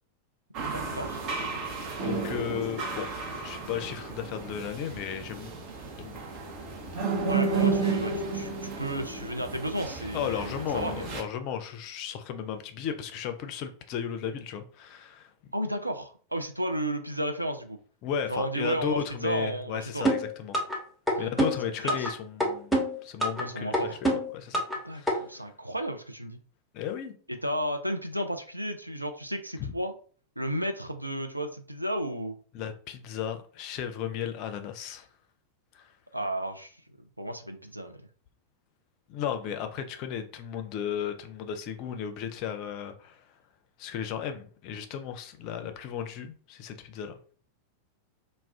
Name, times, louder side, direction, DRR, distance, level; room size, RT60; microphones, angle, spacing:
sound 1, 0.5-11.2, right 4 dB, 40° right, 0.7 m, -32 dB
voice 1, 0.7-1.2 7.3-11.1 15.5-17.8 18.3-20.1 21.2-21.5 21.8-22.1 23.4-24.0 24.8-26.4 27.3-29.9 30.4-32.4 36.1-37.9, right 1 dB, 85° right, 0.3 m, -33 dB
voice 2, 2.0-3.1 3.4-5.5 6.0-6.2 10.1-15.5 18.0-20.6 21.2-24.0 24.3-24.6 24.9-25.3 26.7-27.1 29.6-29.7 32.5-35.1 35.7-35.9 39.1-43.3 43.8-47.2, left 8 dB, 40° left, 0.4 m, -35 dB
sound 2, 20.0-20.8 21.1-22.1 22.4-23.4 23.7-24.8 25.1-25.2, equal, 5° right, 0.7 m, -26 dB
2.3 x 2.1 x 3.5 m
figure-of-eight pair, 90°, 0 cm